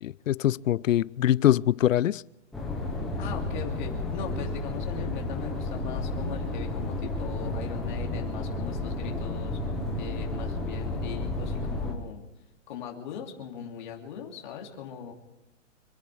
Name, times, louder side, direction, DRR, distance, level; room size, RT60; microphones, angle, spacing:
voice 1, 0.0-2.2, left 12 dB, 85° left, 0.6 m, -23 dB
sound 1, 2.5-11.9, left 2 dB, ahead, 0.6 m, -32 dB
voice 2, 3.2-9.6 10.0-12.3 12.7-15.1, left 8 dB, 35° left, 2.9 m, -40 dB
27.0 x 10.5 x 4.9 m
hypercardioid pair, 170°, 38 cm